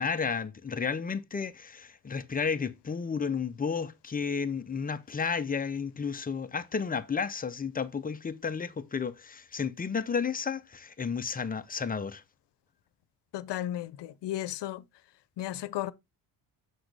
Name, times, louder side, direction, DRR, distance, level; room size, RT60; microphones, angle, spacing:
voice 1, 0.0-12.2, left 6 dB, 20° left, 0.5 m, -32 dB
voice 2, 13.3-14.8 15.4-15.9, left 13 dB, 80° left, 0.7 m, -34 dB
7.0 x 6.2 x 3.2 m
cardioid pair, 155°, 41 cm